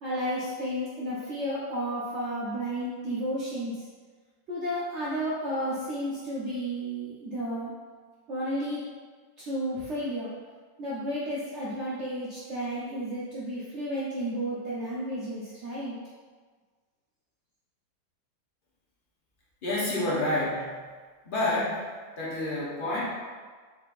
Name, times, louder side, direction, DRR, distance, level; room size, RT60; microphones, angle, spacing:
voice 1, 0.0-3.9 4.5-7.7 8.3-8.8 9.4-10.3 10.8-16.0, equal, 80° right, -8 dB, 0.6 m, -32 dB
voice 2, 19.6-20.8 21.2-21.8 22.2-23.0, left 1 dB, 60° left, -7 dB, 0.5 m, -28 dB
4.0 x 4.0 x 2.4 m, 1.5 s
omnidirectional pair, 2.1 m